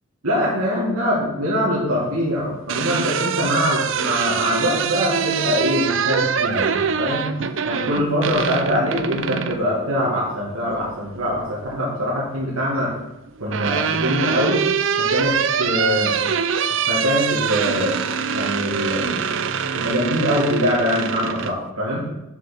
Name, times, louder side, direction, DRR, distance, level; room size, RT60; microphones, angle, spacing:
voice 1, 0.2-7.3 7.6-12.9 13.4-14.6 15.0-16.2 16.9-18.0 18.3-19.1 19.7-22.0, equal, 85° right, -6 dB, 2.1 m, -23 dB
sound 1, 2.4-9.6 11.1-11.8 13.0-21.5, right 6 dB, 60° right, 0.5 m, -24 dB
7.3 x 6.4 x 5.9 m, 0.91 s
head